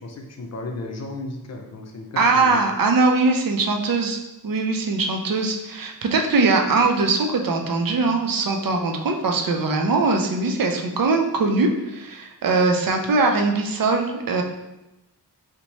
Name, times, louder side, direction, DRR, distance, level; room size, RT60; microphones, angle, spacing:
voice 1, 0.0-2.6, left 2 dB, 40° left, 3 dB, 0.6 m, -34 dB
voice 2, 2.2-4.2 4.4-14.4, right 3 dB, 55° right, 3 dB, 0.5 m, -21 dB
2.9 x 2.2 x 4.0 m, 0.96 s
wide cardioid pair, 70°, 40 cm